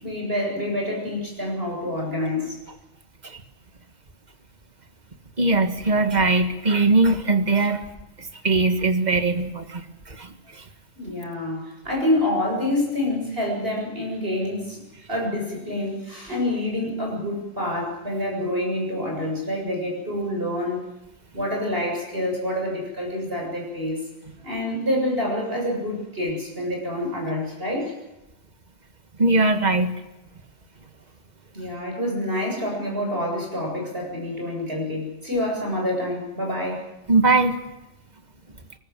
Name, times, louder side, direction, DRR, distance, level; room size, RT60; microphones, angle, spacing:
voice 1, 0.0-2.6 11.0-14.8 15.1-20.8 21.3-24.0 24.4-27.9 31.5-36.8, left 1 dB, 50° right, -1 dB, 7.9 m, -27 dB
voice 2, 5.4-7.8 8.2-10.6 29.2-30.0 37.1-37.6, right 3 dB, 35° right, 7 dB, 1.8 m, -21 dB
24.0 x 20.5 x 7.6 m, 0.99 s
omnidirectional pair, 1.3 m